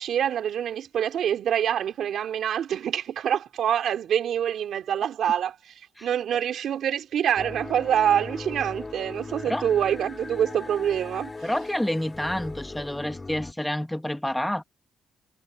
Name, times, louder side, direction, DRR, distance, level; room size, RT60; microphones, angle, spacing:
voice 1, 0.0-5.5 6.0-11.3, right 9 dB, 70° right, 3.3 m, -25 dB
sound 1, 7.4-13.5, left 3 dB, 20° left, 3.0 m, -38 dB
voice 2, 11.4-14.6, left 1 dB, 5° left, 1.6 m, -28 dB
cardioid pair, 90°, 0 cm